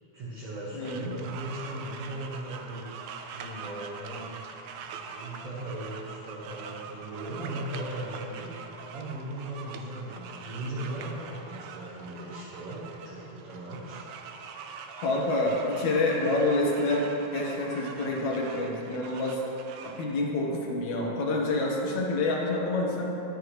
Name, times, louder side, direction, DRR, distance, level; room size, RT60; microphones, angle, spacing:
voice 1, 0.1-2.9 3.3-4.3 4.9-8.5 8.9-14.0, right 1 dB, 55° right, -9 dB, 2.4 m, -38 dB
voice 2, 0.7-1.2 15.0-17.1 17.3-19.4 19.8-23.1, left 2 dB, 70° left, -2 dB, 2.7 m, -27 dB
sound 1, 0.8-20.0, right 5 dB, 75° right, 1.7 m, -43 dB
21.0 x 7.1 x 3.2 m, 2.9 s
omnidirectional pair, 3.5 m